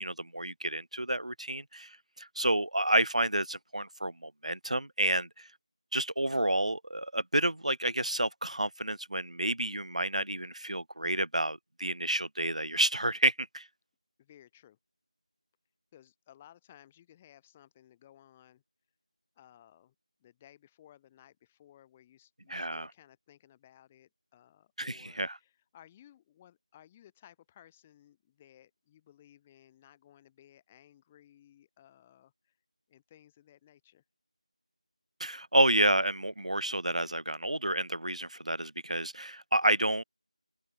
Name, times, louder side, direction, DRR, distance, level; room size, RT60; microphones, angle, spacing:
voice 1, 0.0-5.5 5.9-13.7 22.5-22.9 24.8-25.4 35.2-40.0, right 1 dB, 75° right, 0.5 m, -30 dB
voice 2, 14.2-14.8 15.9-18.6 19.4-19.9 20.2-32.6 32.9-34.0, left 11 dB, 10° left, 2.7 m, -59 dB
open air
figure-of-eight pair, 170°, 4 cm